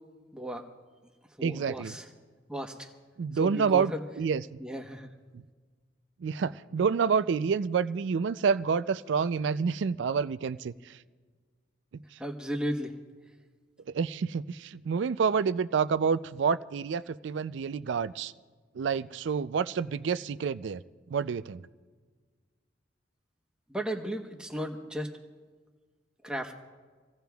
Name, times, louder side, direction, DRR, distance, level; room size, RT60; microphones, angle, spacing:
voice 1, 0.3-0.7 1.4-2.1 2.5-2.9 3.4-4.0 4.6-5.1 12.2-13.0 23.7-25.1 26.2-26.5, equal, 5° right, 3 dB, 1.0 m, -35 dB
voice 2, 1.4-1.9 3.2-3.9 4.2-4.6 5.3-5.4 6.2-10.9 13.9-18.3 18.8-20.8 21.1-21.6, right 6 dB, 70° right, 15 dB, 0.4 m, -28 dB
26.5 x 16.5 x 2.3 m, 1.5 s
head